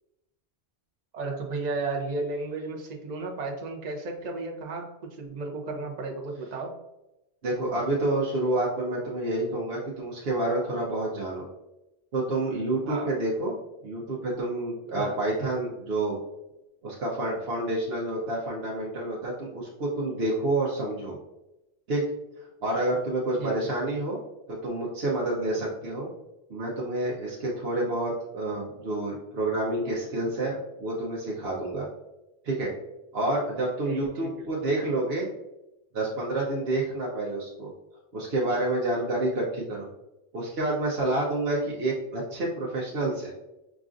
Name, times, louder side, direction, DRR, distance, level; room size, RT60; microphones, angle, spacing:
voice 1, 1.1-4.9 5.2-6.7 12.8-13.1 15.0-15.2 23.4-23.7 33.8-34.5, right 3 dB, 45° right, 1 dB, 0.7 m, -33 dB
voice 2, 7.4-11.5 12.1-13.5 13.8-16.2 16.8-21.2 21.9-22.0 22.6-24.2 24.6-26.1 26.5-31.9 32.4-32.7 33.1-35.3 35.9-37.7 38.1-39.9 40.3-43.3, right 2 dB, 75° right, -4 dB, 1.0 m, -28 dB
6.0 x 2.4 x 2.5 m, 0.93 s
omnidirectional pair, 1.1 m